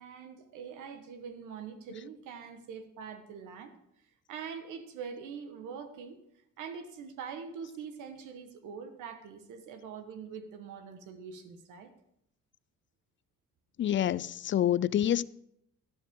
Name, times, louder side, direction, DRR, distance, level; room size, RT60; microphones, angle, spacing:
voice 1, 0.0-3.7 4.3-6.2 6.6-11.9, right 6 dB, 90° right, 1.3 m, -43 dB
voice 2, 13.8-15.2, left 11 dB, 40° left, 0.4 m, -27 dB
12.0 x 11.5 x 3.7 m
cardioid pair, 90°, 30 cm